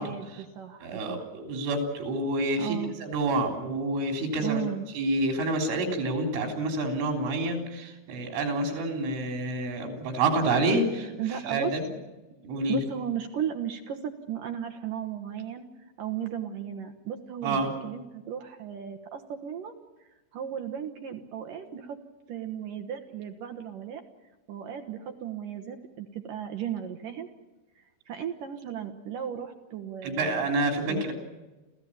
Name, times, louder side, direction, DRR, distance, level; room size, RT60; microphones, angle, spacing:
voice 1, 0.0-1.3 2.6-2.9 4.4-4.9 11.2-11.7 12.7-15.6 16.0-19.7 20.3-22.0 22.3-24.0 24.5-27.3 27.8-30.5 30.9-31.1, right 9 dB, 70° right, 6 dB, 2.2 m, -35 dB
voice 2, 0.8-4.6 4.9-11.9 12.4-12.9 17.4-17.7 30.0-31.1, right 2 dB, 90° right, 4 dB, 6.0 m, -28 dB
28.0 x 15.5 x 8.6 m, 1.1 s
omnidirectional pair, 5.4 m